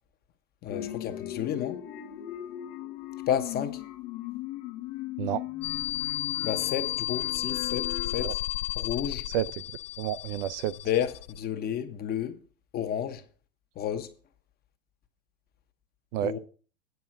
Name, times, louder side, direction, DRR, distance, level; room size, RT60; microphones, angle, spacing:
voice 1, 0.6-1.8 3.3-3.8 6.4-8.4 8.8-9.2 10.8-12.4 12.7-13.2 13.8-14.1 16.2-16.4, left 9 dB, 25° left, 1.0 m, -31 dB
sound 1, 0.7-8.3, left 12 dB, 45° left, 1.0 m, -38 dB
sound 2, 5.6-11.4, left 15 dB, 75° left, 0.5 m, -33 dB
voice 2, 10.0-10.7 16.1-16.4, right 11 dB, 50° right, 0.5 m, -29 dB
9.4 x 5.4 x 7.2 m
supercardioid pair, 140°, 38 cm